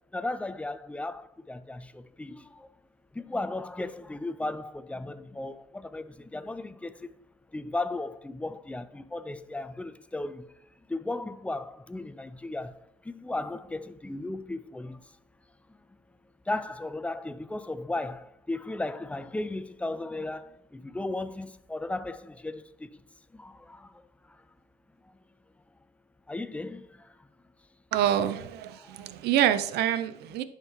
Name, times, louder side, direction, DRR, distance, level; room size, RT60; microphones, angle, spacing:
voice 1, 0.1-2.7 3.1-7.1 7.5-10.5 10.9-15.0 16.5-23.0 23.3-24.0 26.3-27.1 28.8-29.1, left 2 dB, 5° left, 0.5 m, -36 dB
voice 2, 27.9-30.4, right 11 dB, 80° right, 0.6 m, -26 dB
11.0 x 5.8 x 3.2 m
cardioid pair, 110°, 17 cm